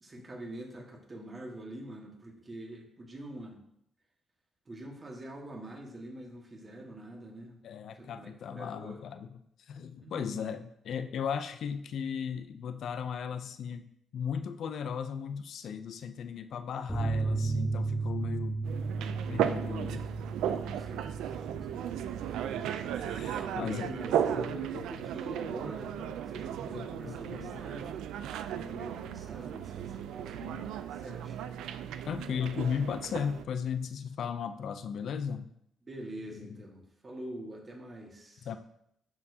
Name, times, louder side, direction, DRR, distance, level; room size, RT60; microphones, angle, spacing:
voice 1, 0.0-3.6 4.7-7.6 7.9-9.0 10.0-10.6 20.6-22.2 23.2-25.9 26.3-28.0 28.5-31.4 35.9-38.5, right 1 dB, 30° right, 1 dB, 1.5 m, -45 dB
voice 2, 7.6-18.6 19.3-20.1 23.0-23.9 24.4-24.9 26.0-26.2 26.8-27.7 32.1-35.5 36.3-36.6 38.4-38.6, left 7 dB, 65° left, 9 dB, 0.4 m, -36 dB
sound 1, 16.9-24.0 24.2-24.4 24.7-24.8, right 3 dB, ahead, 0.9 m, -35 dB
sound 2, 18.6-33.4, right 9 dB, 85° right, 0.3 m, -35 dB
11.0 x 4.5 x 2.7 m, 0.74 s
cardioid pair, 90°, 0 cm